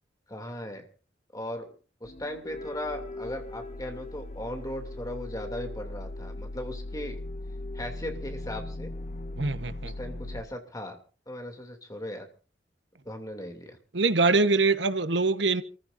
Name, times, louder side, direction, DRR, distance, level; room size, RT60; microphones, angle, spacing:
voice 1, 0.3-0.9 1.3-1.7 2.0-7.2 7.7-8.9 9.6-11.0 11.3-12.3 13.0-13.8, left 1 dB, 20° left, 2.8 m, -38 dB
sound 1, 2.0-10.4, left 2 dB, 40° left, 0.9 m, -39 dB
voice 2, 9.4-9.9 13.9-15.6, right 3 dB, 90° right, 1.1 m, -24 dB
28.5 x 15.0 x 2.7 m
head